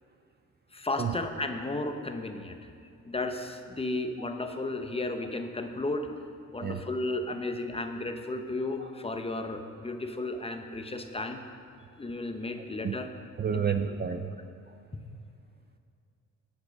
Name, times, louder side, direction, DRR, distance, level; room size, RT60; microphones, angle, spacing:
voice 1, 0.7-2.6 3.0-6.1 6.5-11.4 12.0-13.1 13.5-13.7 14.9-15.0, left 2 dB, 20° left, 6 dB, 1.0 m, -34 dB
voice 2, 13.4-14.4, right 7 dB, 35° right, 8 dB, 0.6 m, -30 dB
16.5 x 6.0 x 5.3 m, 2.5 s
cardioid pair, 90°, 30 cm